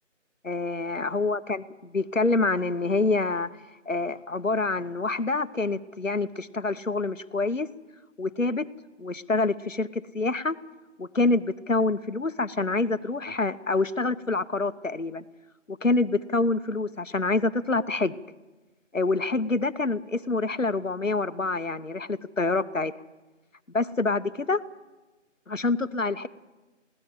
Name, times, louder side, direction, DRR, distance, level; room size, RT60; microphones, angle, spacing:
voice 1, 0.4-3.5 3.9-7.7 8.2-8.7 9.0-10.6 11.0-15.2 15.7-18.2 18.9-22.9 23.7-24.6 25.5-26.3, left 3 dB, 85° left, 14 dB, 1.1 m, -26 dB
21.0 x 17.0 x 7.6 m, 1.2 s
figure-of-eight pair, 180°, 37 cm